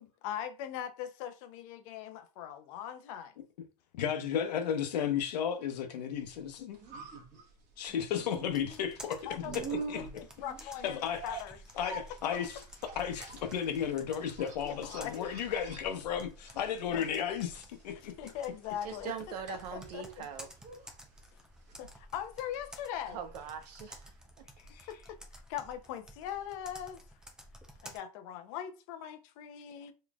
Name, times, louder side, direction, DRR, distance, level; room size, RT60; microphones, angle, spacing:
voice 1, 0.0-3.3 9.3-9.8 10.2-11.6 14.6-15.3 16.9-17.0 18.2-19.1 19.5-20.2 21.8-23.2 24.9-27.0 27.8-29.9, left 10 dB, 55° left, 0.7 m, -41 dB
voice 2, 3.9-6.8 7.8-9.3 9.5-10.1 10.8-11.4 11.8-12.6 13.0-18.3 24.7-24.9, left 8 dB, 85° left, 1.0 m, -34 dB
sound 1, 6.3-24.4 24.6-24.7, right 4 dB, 35° right, 1.3 m, -47 dB
Computer keyboard, 8.4-28.0, equal, 5° right, 0.6 m, -53 dB
voice 3, 18.8-20.5 23.1-24.1, right 7 dB, 75° right, 1.0 m, -41 dB
3.9 x 3.1 x 2.4 m
supercardioid pair, 135°, 21 cm